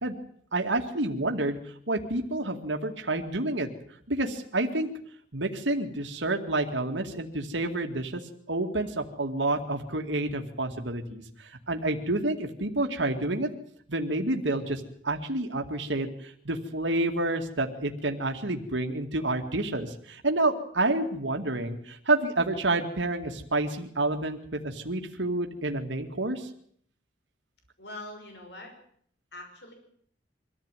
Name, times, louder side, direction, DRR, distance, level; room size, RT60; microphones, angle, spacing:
voice 1, 0.5-1.6 1.9-3.7 4.1-4.9 5.3-8.2 8.5-13.5 13.9-26.5, right 2 dB, 85° right, 4 dB, 2.3 m, -29 dB
voice 2, 27.8-28.7 29.3-29.7, left 1 dB, 70° left, 4 dB, 5.9 m, -43 dB
24.5 x 15.0 x 9.2 m, 0.64 s
head